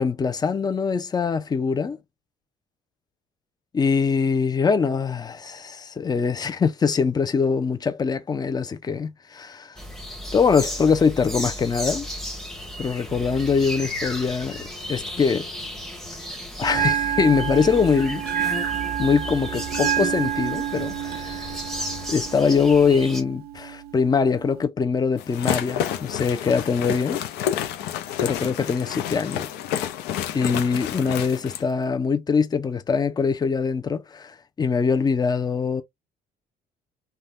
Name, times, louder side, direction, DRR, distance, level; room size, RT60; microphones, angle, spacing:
voice 1, 0.0-2.0 3.7-9.8 10.3-12.1 12.8-15.5 16.6-18.2 19.0-21.5 22.1-27.2 28.2-29.5 30.3-35.8, left 5 dB, 25° left, 0.5 m, -23 dB
sound 1, 9.8-23.2, equal, ahead, 1.0 m, -34 dB
Bell, 16.6-24.6, right 10 dB, 70° right, 0.5 m, -29 dB
sound 2, 25.2-31.6, left 10 dB, 90° left, 0.6 m, -29 dB
2.6 x 2.2 x 3.4 m
cardioid pair, 110°, 17 cm